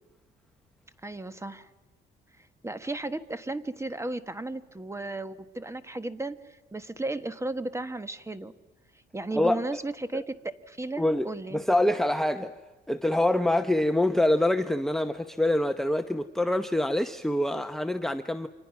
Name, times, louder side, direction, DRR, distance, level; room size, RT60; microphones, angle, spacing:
voice 1, 1.0-1.7 2.4-8.5 9.1-11.6, right 2 dB, 15° right, 12 dB, 1.4 m, -35 dB
voice 2, 11.0-11.3 11.5-12.6 12.9-18.5, left 1 dB, ahead, 7 dB, 0.9 m, -25 dB
29.5 x 25.5 x 6.0 m, 1.2 s
cardioid pair, 90°, 20 cm